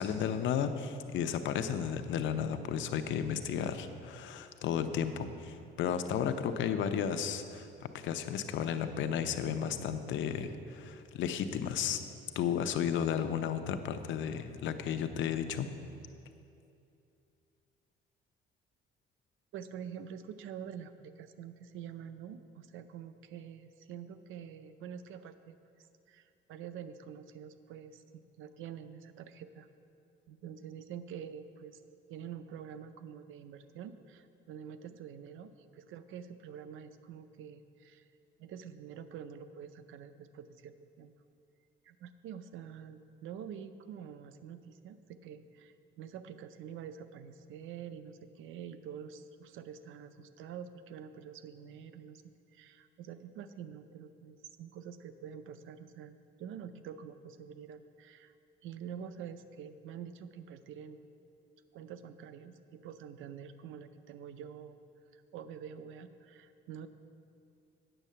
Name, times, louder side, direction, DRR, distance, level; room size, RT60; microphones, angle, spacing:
voice 1, 0.0-7.7 8.0-12.0 12.3-15.7, left 8 dB, 70° left, 9 dB, 0.7 m, -33 dB
voice 2, 19.5-25.6 26.1-29.7 30.3-31.8 32.1-38.0 38.4-41.1 41.8-52.2 52.5-58.3 58.6-61.1 61.7-64.8 65.1-66.9, right 8 dB, 80° right, 11 dB, 0.6 m, -47 dB
9.0 x 7.3 x 6.7 m, 2.5 s
cardioid pair, 125°, 20 cm